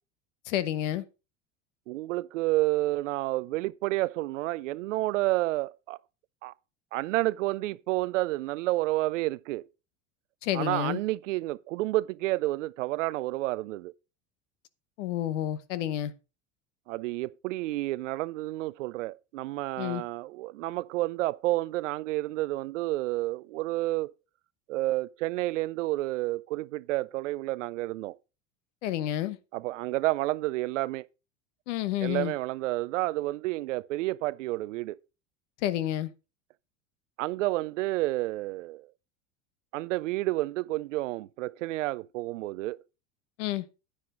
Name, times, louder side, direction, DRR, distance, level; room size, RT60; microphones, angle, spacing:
voice 1, 0.5-1.0 10.4-11.0 15.0-16.1 19.8-20.0 28.8-29.4 31.7-32.3 35.6-36.1 43.4-43.6, left 12 dB, 75° left, 1.1 m, -29 dB
voice 2, 1.9-6.0 6.4-6.5 6.9-9.6 10.5-13.9 16.9-24.1 24.7-28.2 29.5-31.1 32.0-35.0 37.2-38.9 39.7-42.8, right 18 dB, 80° right, 0.6 m, -30 dB
9.7 x 9.6 x 3.8 m
hypercardioid pair, 100°, 37 cm